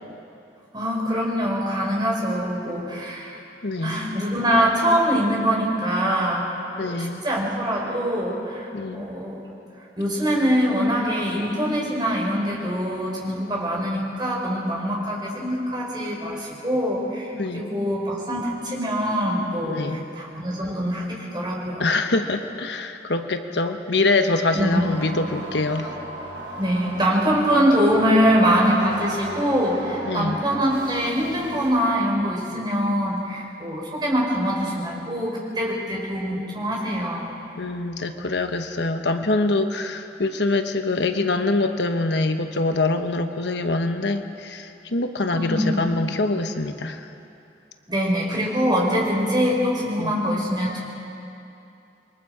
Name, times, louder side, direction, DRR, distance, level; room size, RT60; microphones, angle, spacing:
voice 1, 0.7-3.4 3.8-6.5 6.8-9.4 10.0-21.9 24.5-24.8 25.1-25.2 26.6-37.3 45.3-45.9 47.9-50.8, equal, 25° right, -3 dB, 4.7 m, -23 dB
voice 2, 3.6-4.2 6.8-7.2 8.7-9.1 17.3-17.7 19.7-20.0 21.8-25.9 30.1-30.4 37.6-47.1 50.0-50.1, left 2 dB, 75° left, 7 dB, 1.1 m, -24 dB
sound 1, 24.7-31.7, right 1 dB, 70° right, 5.4 m, -36 dB
27.5 x 22.5 x 4.9 m, 2.7 s
head